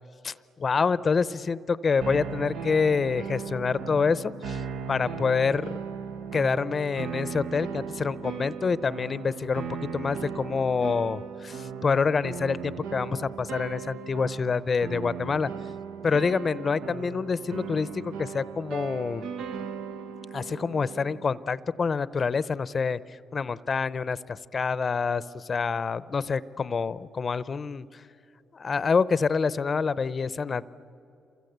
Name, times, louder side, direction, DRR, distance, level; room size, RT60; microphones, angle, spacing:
voice 1, 0.2-4.6 4.9-5.8 6.3-9.6 9.9-15.5 16.0-19.3 20.3-27.9 28.5-30.7, left 5 dB, 40° left, 17 dB, 0.7 m, -27 dB
sound 1, 2.0-21.3, right 6 dB, 85° right, 1.1 m, -37 dB
27.5 x 23.5 x 8.0 m, 2.9 s
cardioid pair, 90°, 0 cm